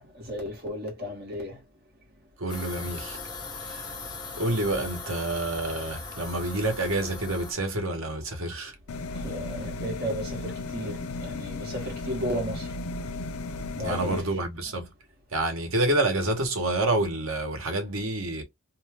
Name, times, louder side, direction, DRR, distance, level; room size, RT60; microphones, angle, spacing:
voice 1, 0.0-1.6 9.1-12.7 13.7-14.3, equal, 45° right, 1.1 m, -34 dB
voice 2, 2.4-3.2 3.6-3.8 4.4-8.7 13.8-14.9 15.3-18.4, right 2 dB, 70° right, 1.0 m, -28 dB
sound 1, 2.5-7.5, left 3 dB, 20° left, 1.0 m, -39 dB
sound 2, 8.9-14.2, left 2 dB, 80° left, 0.5 m, -35 dB
2.6 x 2.3 x 3.3 m
head